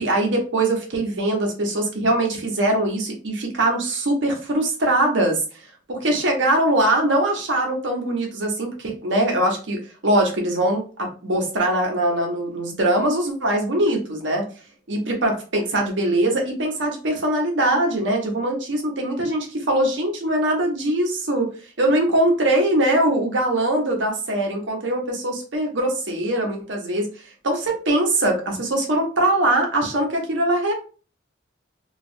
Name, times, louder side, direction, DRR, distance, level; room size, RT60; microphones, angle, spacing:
voice 1, 0.0-5.4 5.9-14.4 14.9-21.5 21.8-27.1 27.4-30.7, right 1 dB, 70° right, 1 dB, 0.8 m, -22 dB
3.0 x 2.4 x 2.6 m, 0.37 s
head